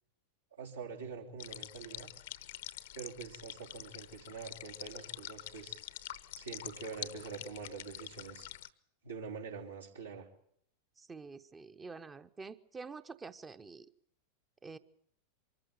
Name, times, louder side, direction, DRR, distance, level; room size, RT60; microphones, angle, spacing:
voice 1, 0.6-2.1 2.9-5.8 6.3-8.5 9.0-10.3, right 5 dB, 75° right, -2 dB, 3.4 m, -45 dB
sound 1, 1.4-8.7, left 14 dB, 55° left, 0.8 m, -46 dB
voice 2, 11.0-13.9 14.6-14.8, right 4 dB, 15° right, 11 dB, 0.9 m, -47 dB
24.0 x 14.5 x 8.9 m, 0.69 s
figure-of-eight pair, 90°, 0 cm